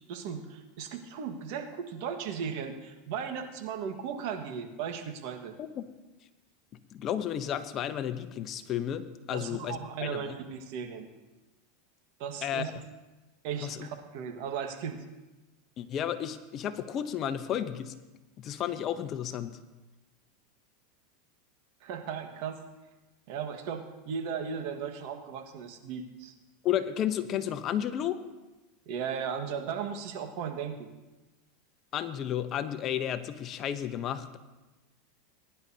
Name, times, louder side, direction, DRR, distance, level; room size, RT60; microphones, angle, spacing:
voice 1, 0.1-5.5 9.3-11.1 12.2-12.7 13.4-15.0 21.8-22.6 23.3-26.3 28.8-30.9, right 7 dB, 60° right, 5 dB, 1.6 m, -36 dB
voice 2, 6.9-10.4 12.4-12.7 13.6-13.9 15.8-17.9 18.4-19.6 26.6-28.2 31.9-34.4, left 10 dB, 40° left, 10 dB, 0.8 m, -32 dB
20.5 x 10.5 x 2.8 m, 1.1 s
supercardioid pair, 115°, 0 cm